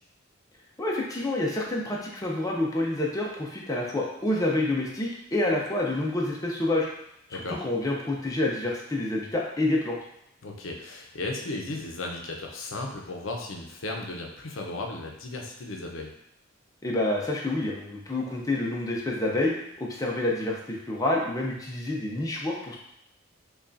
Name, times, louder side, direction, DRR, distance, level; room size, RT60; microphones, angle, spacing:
voice 1, 0.8-6.9 7.3-10.0 16.8-19.5 19.8-22.8, left 2 dB, 15° left, -2 dB, 0.5 m, -28 dB
voice 2, 7.3-7.6 10.4-16.1, left 2 dB, 70° left, 1 dB, 0.6 m, -35 dB
5.3 x 2.3 x 2.5 m, 0.77 s
head